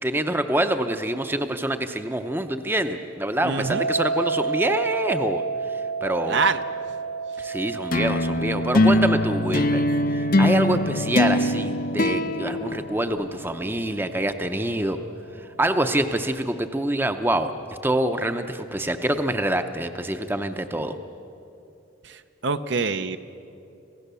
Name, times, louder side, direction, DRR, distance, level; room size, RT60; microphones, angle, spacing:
voice 1, 0.0-5.4 6.0-6.4 7.4-9.8 10.1-15.0 15.6-17.5 17.8-21.0, right 1 dB, 10° right, 8 dB, 0.7 m, -25 dB
voice 2, 3.4-3.8 6.3-6.6 22.4-23.2, right 4 dB, 60° right, 10 dB, 0.7 m, -24 dB
sound 1, 3.6-14.5, right 4 dB, 85° right, 5.2 m, -32 dB
sound 2, 7.9-13.5, left 1 dB, 45° left, 0.7 m, -22 dB
27.5 x 16.0 x 6.9 m, 2.7 s
head